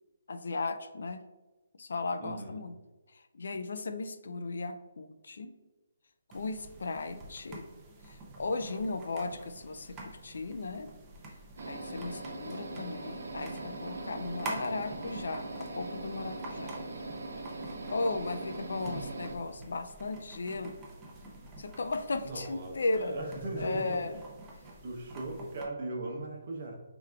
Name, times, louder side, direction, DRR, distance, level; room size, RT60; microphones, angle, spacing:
voice 1, 0.3-1.2 1.8-2.7 3.1-5.5 6.3-7.7 8.0-10.9 11.7-16.7 17.9-20.8 21.6-23.2 23.6-24.1, left 3 dB, 60° left, 9 dB, 0.3 m, -36 dB
voice 2, 2.2-2.7 22.2-24.0 24.8-26.8, right 2 dB, 35° right, 0 dB, 0.8 m, -38 dB
sound 1, 6.3-25.7, right 2 dB, 10° right, 0.4 m, -48 dB
sound 2, 11.6-19.4, right 2 dB, 65° right, 0.8 m, -41 dB
4.6 x 3.5 x 2.2 m, 1.2 s
hypercardioid pair, 175°, 0 cm